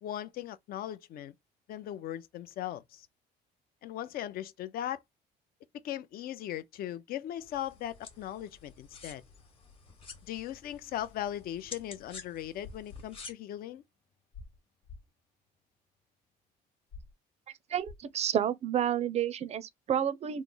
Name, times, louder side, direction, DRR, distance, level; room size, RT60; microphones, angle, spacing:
voice 1, 0.0-1.3 1.7-3.1 3.8-5.0 5.8-9.2 10.3-13.8, left 12 dB, 60° left, 0.5 m, -38 dB
sound 1, 7.4-13.3, left 4 dB, 30° left, 1.0 m, -50 dB
sound 2, 12.4-13.8 14.1-14.6 14.8-15.1 16.9-17.1 17.8-18.1, left 4 dB, 75° left, 1.1 m, -49 dB
voice 2, 17.7-20.4, right 9 dB, 40° right, 0.4 m, -30 dB
3.1 x 2.0 x 3.7 m
cardioid pair, 110°, 17 cm